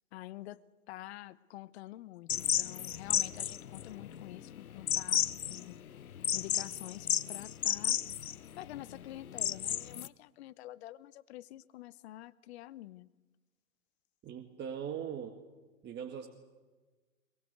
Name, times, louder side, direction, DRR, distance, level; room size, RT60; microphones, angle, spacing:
voice 1, 0.1-5.8 6.3-8.0 8.6-13.1, left 15 dB, 50° left, 17 dB, 1.0 m, -48 dB
sound 1, 2.3-10.1, left 9 dB, 80° left, 0.9 m, -33 dB
voice 2, 14.2-15.4 15.8-16.3, right 8 dB, 25° right, 3 dB, 2.0 m, -40 dB
22.5 x 22.5 x 8.1 m, 1.3 s
hypercardioid pair, 110°, 42 cm